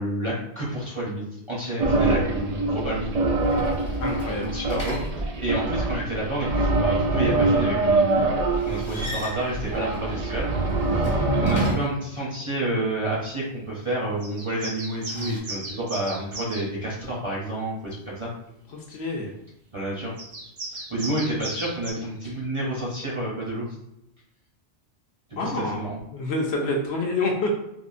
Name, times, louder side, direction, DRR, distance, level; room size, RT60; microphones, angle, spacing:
voice 1, 0.0-3.3 4.4-8.3 8.6-10.5 10.9-18.3 19.7-20.1 20.7-23.6 25.4-26.0, right 1 dB, 30° right, -6 dB, 0.7 m, -29 dB
sound 1, 1.8-11.7, right 2 dB, 85° right, 0.3 m, -24 dB
sound 2, 3.4-5.7 8.5-12.1 14.7-15.4, left 1 dB, 30° left, 0.6 m, -39 dB
voice 2, 4.0-4.5 18.7-19.3 25.4-25.8 26.1-27.5, left 2 dB, 70° left, 1 dB, 0.8 m, -27 dB
sound 3, 14.2-16.7 20.2-21.9, right 2 dB, 70° right, 1.1 m, -36 dB
3.5 x 2.0 x 2.5 m, 0.83 s
omnidirectional pair, 1.2 m